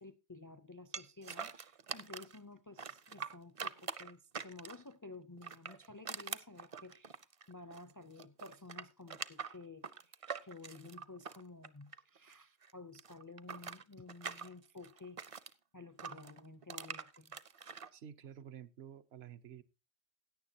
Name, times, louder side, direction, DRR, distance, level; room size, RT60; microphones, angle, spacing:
voice 1, 0.0-17.4, left 3 dB, 30° left, 0.4 m, -53 dB
sound 1, 0.9-2.4 2.8-4.9 5.4-7.9 8.2-12.3 12.6-15.5 16.0-17.9, right 6 dB, 40° right, 0.6 m, -44 dB
voice 2, 17.9-19.6, right 9 dB, 75° right, 1.0 m, -51 dB
16.5 x 9.7 x 2.8 m
omnidirectional pair, 1.1 m